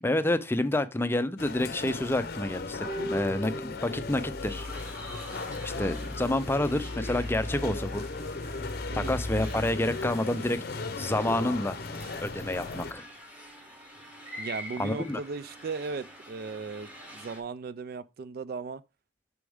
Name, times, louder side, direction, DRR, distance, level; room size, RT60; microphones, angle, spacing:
voice 1, 0.0-4.7 5.6-8.0 8.9-10.6 11.0-11.8 12.2-13.0 14.8-15.2, left 1 dB, 10° left, 0.5 m, -29 dB
sound 1, 1.4-12.9, left 3 dB, 50° left, 0.7 m, -36 dB
sound 2, 2.8-4.5 4.8-4.9, right 1 dB, 70° right, 4.6 m, -37 dB
sound 3, 4.4-17.4, equal, 10° right, 1.7 m, -47 dB
voice 2, 14.4-18.8, right 4 dB, 50° right, 0.3 m, -37 dB
6.7 x 6.2 x 3.5 m
head